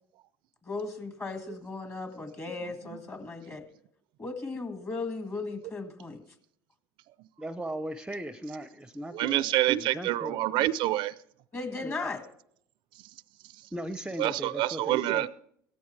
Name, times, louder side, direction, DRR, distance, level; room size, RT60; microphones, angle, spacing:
voice 1, 0.7-3.7 4.2-6.2 11.5-12.2, left 3 dB, 25° left, 7 dB, 1.8 m, -36 dB
voice 2, 7.4-10.4 11.8-12.1 13.7-15.3, right 1 dB, 10° right, 12 dB, 0.7 m, -38 dB
voice 3, 9.1-11.1 14.2-15.3, right 15 dB, 60° right, 18 dB, 0.5 m, -27 dB
16.0 x 13.5 x 3.3 m, 0.67 s
hypercardioid pair, 80°, 9 cm